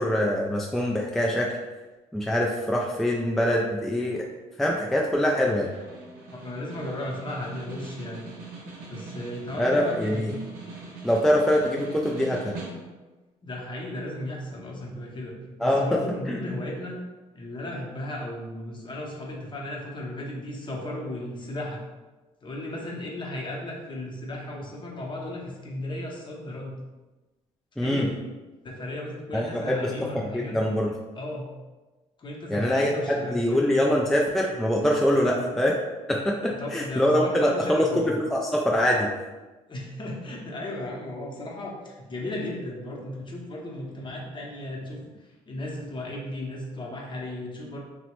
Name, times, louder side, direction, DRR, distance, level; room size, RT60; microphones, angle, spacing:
voice 1, 0.0-1.6 2.1-4.3 4.6-5.7 9.6-10.4 11.0-12.5 15.6-16.0 16.3-16.4 27.8-28.1 29.3-30.9 32.5-32.9 33.3-35.8 36.1-39.1, equal, ahead, -2 dB, 0.3 m, -24 dB
Snare drum, 5.2-13.1, right 3 dB, 80° right, 0.7 m, -42 dB
voice 2, 6.3-8.3 8.9-10.3 13.4-17.0 17.3-21.8 22.4-26.8 27.8-28.2 28.6-30.5 31.2-31.5 32.2-33.7 35.2-35.6 36.4-38.2 39.7-45.1 45.5-47.8, left 1 dB, 35° left, -1 dB, 0.8 m, -35 dB
3.0 x 2.0 x 3.0 m, 1.2 s
supercardioid pair, 70°, 15 cm